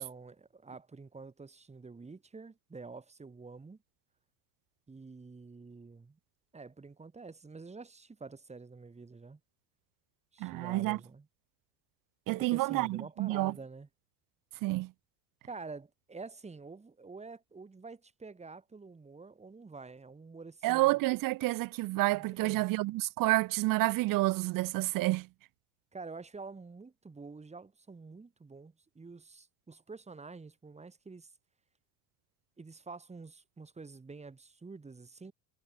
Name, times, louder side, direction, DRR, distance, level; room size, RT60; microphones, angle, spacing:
voice 1, 0.0-3.8 4.9-6.2 6.5-9.4 10.3-11.3 12.3-13.9 15.4-21.0 22.1-22.7 25.9-31.3 32.6-35.3, right 4 dB, 15° right, 2.3 m, -48 dB
voice 2, 10.4-11.0 12.3-13.5 14.6-14.9 20.6-25.3, right 20 dB, 45° right, 0.7 m, -29 dB
supercardioid pair, 100°, 48 cm